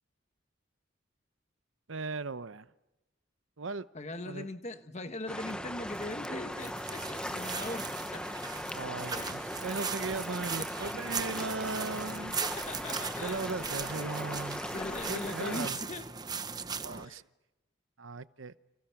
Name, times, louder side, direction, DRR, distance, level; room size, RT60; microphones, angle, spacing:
voice 1, 1.9-2.7 3.6-3.9 4.3-4.5 8.7-12.4 13.2-14.6 15.1-15.8 16.8-17.2 18.0-18.5, right 3 dB, 80° right, 14 dB, 0.8 m, -37 dB
voice 2, 3.9-8.3 9.1-9.4 10.6-10.7 12.4-13.5 14.7-16.1 17.0-17.2, left 2 dB, 35° left, 8 dB, 1.4 m, -40 dB
sound 1, 5.3-15.7, left 1 dB, 5° left, 1.0 m, -39 dB
sound 2, 5.4-17.1, right 5 dB, 20° right, 0.9 m, -39 dB
30.0 x 29.0 x 6.0 m, 0.98 s
head